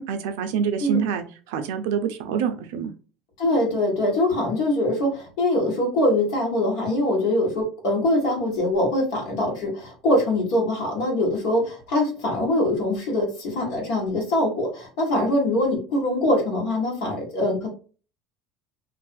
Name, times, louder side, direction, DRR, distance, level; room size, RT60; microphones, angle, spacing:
voice 1, 0.0-2.9, right 7 dB, 80° right, 7 dB, 0.5 m, -26 dB
voice 2, 3.4-17.7, left 1 dB, 75° left, -1 dB, 1.2 m, -23 dB
2.5 x 2.3 x 2.5 m, 0.38 s
supercardioid pair, 100°, 0 cm